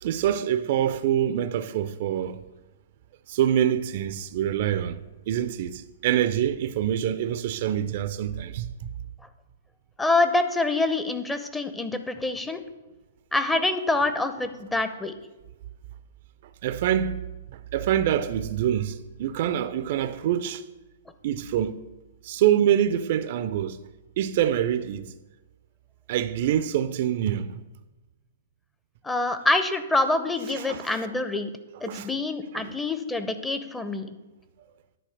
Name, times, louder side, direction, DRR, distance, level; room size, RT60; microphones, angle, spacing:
voice 1, 0.0-2.4 3.3-5.0 5.3-8.7 16.6-17.2 17.5-20.6 21.2-21.8 22.2-23.8 24.2-25.1 26.1-27.6 30.6-31.0 31.8-32.1 32.5-32.7, right 10 dB, 50° right, 0.4 m, -25 dB
voice 2, 10.0-12.6 13.3-15.1 29.0-31.5 31.8-34.2, left 2 dB, 10° left, 0.7 m, -26 dB
10.0 x 4.4 x 6.5 m
figure-of-eight pair, 115°, 0 cm